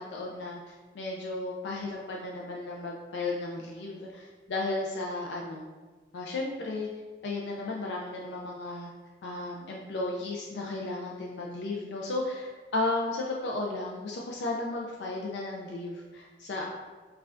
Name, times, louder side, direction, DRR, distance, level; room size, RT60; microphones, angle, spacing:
voice 1, 0.0-5.7 6.1-6.9 7.2-8.9 9.2-16.7, left 2 dB, 65° left, -2 dB, 0.4 m, -34 dB
5.4 x 2.3 x 2.5 m, 1.4 s
head